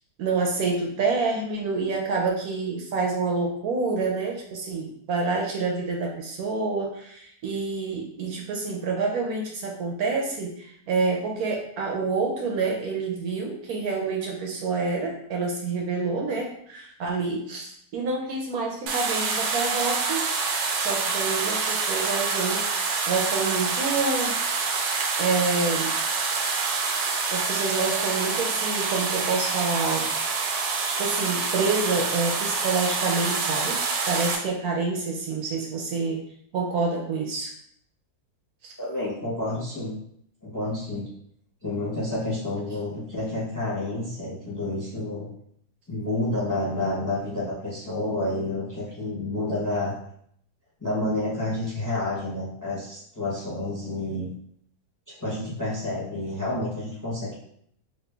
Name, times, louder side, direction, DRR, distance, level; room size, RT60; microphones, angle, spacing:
voice 1, 0.2-20.3 20.8-22.6 23.1-24.4 25.2-25.9 27.0-30.1 30.9-33.8 34.1-36.2 36.5-37.5 38.6-38.7 46.5-46.9, right 4 dB, 70° right, 0 dB, 1.1 m, -28 dB
sound 1, 18.9-34.4, right 4 dB, 90° right, 1.2 m, -26 dB
voice 2, 38.8-40.0 40.4-41.1 41.6-45.3 45.9-50.0 50.8-54.3 55.1-57.5, left 2 dB, 15° left, -6 dB, 0.7 m, -29 dB
3.1 x 2.6 x 3.4 m, 0.66 s
omnidirectional pair, 1.8 m